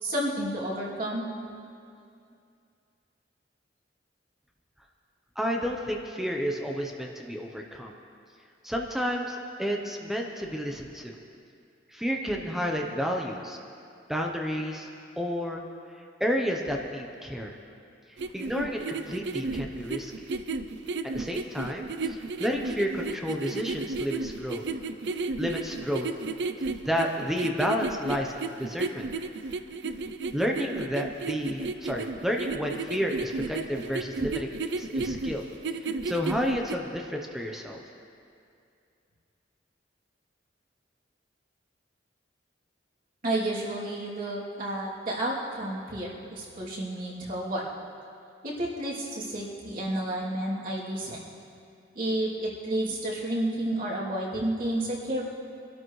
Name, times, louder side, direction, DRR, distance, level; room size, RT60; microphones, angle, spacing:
voice 1, 0.0-1.3 43.2-47.6 48.4-51.2 51.9-55.2, right 1 dB, 50° right, -6 dB, 2.9 m, -31 dB
voice 2, 5.4-7.9 8.6-11.2 11.9-13.6 14.1-14.9 15.1-15.6 15.9-17.6 18.3-20.3 21.0-24.7 25.4-26.1 26.8-29.0 30.3-35.4 35.7-37.8, equal, ahead, 1 dB, 0.8 m, -31 dB
sound 1, 18.2-36.7, right 3 dB, 65° right, 0.5 m, -33 dB
24.5 x 12.5 x 3.2 m, 2.4 s
head